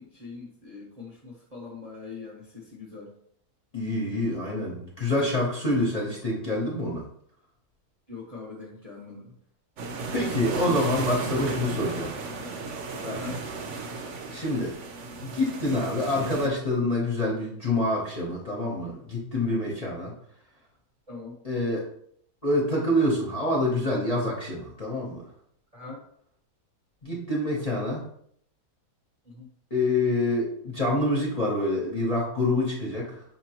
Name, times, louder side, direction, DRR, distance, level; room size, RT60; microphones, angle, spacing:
voice 1, 0.0-3.1 8.1-9.3 13.1-13.4 21.1-21.4 25.7-26.0 29.3-29.5, left 4 dB, 30° right, -3 dB, 0.8 m, -42 dB
voice 2, 3.7-7.0 10.1-12.2 13.0-13.2 14.3-14.7 15.2-20.1 21.4-21.8 22.4-25.2 27.0-28.0 29.7-33.2, left 1 dB, 30° left, -4 dB, 0.8 m, -26 dB
sound 1, 9.8-16.5, right 3 dB, 60° right, 0.8 m, -34 dB
5.7 x 2.9 x 2.9 m, 0.65 s
omnidirectional pair, 1.7 m